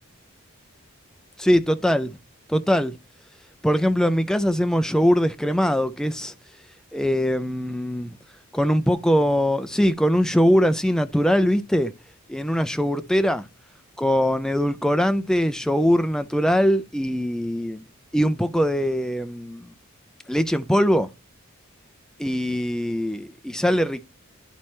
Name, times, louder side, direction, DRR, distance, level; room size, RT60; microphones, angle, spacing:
voice 1, 1.4-2.1 2.5-3.0 3.6-6.3 6.9-8.1 8.5-11.9 12.3-13.4 14.0-17.8 18.1-19.7 20.3-21.1 22.2-24.0, equal, 5° left, 0.4 m, -21 dB
11.0 x 4.3 x 3.2 m
head